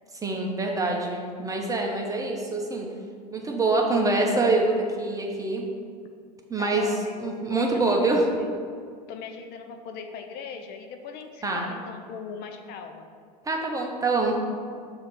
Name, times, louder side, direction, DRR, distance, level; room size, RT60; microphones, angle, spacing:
voice 1, 0.2-2.9 3.3-5.6 6.5-6.9 7.2-8.2 11.4-11.6 13.4-14.4, right 3 dB, 15° right, 1 dB, 1.0 m, -25 dB
voice 2, 6.6-8.6 9.1-13.1, left 5 dB, 50° left, 5 dB, 0.6 m, -39 dB
6.4 x 3.0 x 5.7 m, 2.2 s
hypercardioid pair, 90°, 21 cm